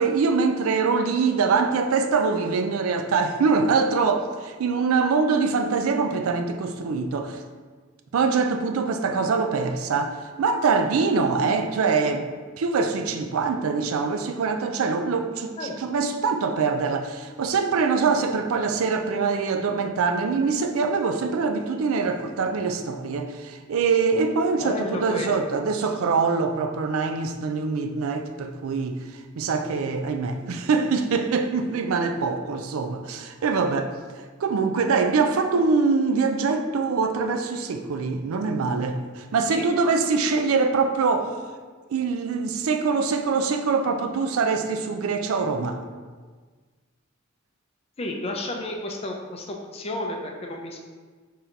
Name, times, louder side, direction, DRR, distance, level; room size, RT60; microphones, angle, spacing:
voice 1, 0.0-7.4 8.1-10.1 10.4-12.3 12.6-15.5 15.8-29.0 29.4-33.9 34.4-41.4 41.9-45.8, right 4 dB, 80° right, 6 dB, 0.4 m, -24 dB
voice 2, 24.6-25.9 35.5-35.6 39.5-39.7 48.0-50.8, left 1 dB, 30° left, 1 dB, 0.5 m, -32 dB
3.8 x 2.8 x 4.4 m, 1.5 s
head